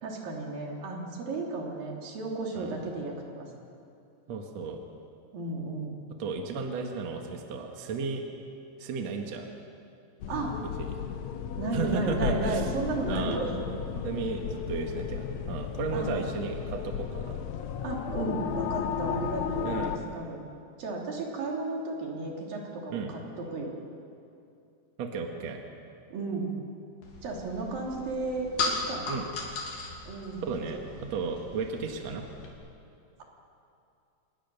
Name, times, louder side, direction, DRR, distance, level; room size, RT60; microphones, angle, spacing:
voice 1, 0.0-3.5 5.3-6.0 10.3-10.6 11.6-13.6 13.9-14.2 15.9-16.1 17.8-20.4 20.8-23.7 26.1-26.5 27.2-29.1 30.1-30.4 30.7-30.8, right 3 dB, 85° right, -1 dB, 4.7 m, -34 dB
voice 2, 4.3-4.8 6.2-8.2 8.8-9.5 10.8-11.0 11.7-12.7 13.1-13.4 14.0-17.4 19.6-20.0 22.9-23.1 25.0-25.6 29.1-29.3 30.4-32.2, right 4 dB, 55° right, 3 dB, 2.6 m, -34 dB
sound 1, 10.2-20.0, left 8 dB, 70° left, 1.8 m, -34 dB
sound 2, 27.0-32.5, left 3 dB, 90° left, 4.6 m, -37 dB
26.0 x 20.0 x 6.8 m, 2.6 s
omnidirectional pair, 3.9 m